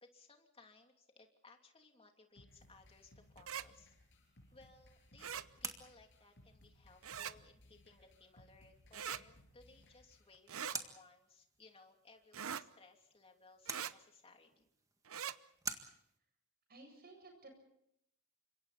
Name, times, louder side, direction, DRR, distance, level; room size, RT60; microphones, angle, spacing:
voice 1, 0.0-4.0 4.5-14.7, left 3 dB, 30° left, 3 dB, 2.9 m, -63 dB
sound 1, 2.4-10.4, left 1 dB, 60° left, 6.6 m, -64 dB
sound 2, 2.5-16.2, right 4 dB, 15° right, 1.8 m, -52 dB
sound 3, 3.4-3.7 5.2-5.5 7.0-7.3 8.9-9.2 10.5-10.8 12.3-12.6 13.7-13.9 15.0-15.4, right 8 dB, 75° right, 0.8 m, -42 dB
voice 2, 16.7-17.5, right 2 dB, 50° right, 4 dB, 7.9 m, -56 dB
29.5 x 26.0 x 4.2 m, 0.73 s
head